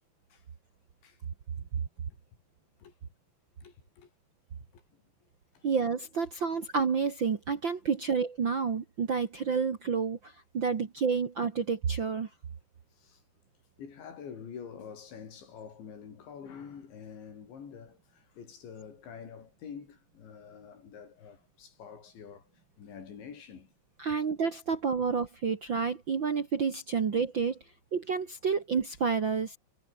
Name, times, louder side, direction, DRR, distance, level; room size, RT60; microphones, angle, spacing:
voice 1, 3.6-4.1 4.7-5.0 5.6-5.7 13.0-13.2 13.8-22.5 22.8-23.7, left 7 dB, 90° left, 6.9 m, -47 dB
voice 2, 5.6-12.3 24.0-27.6 27.9-29.6, right 5 dB, 70° right, 1.1 m, -29 dB
omnidirectional pair, 5.1 m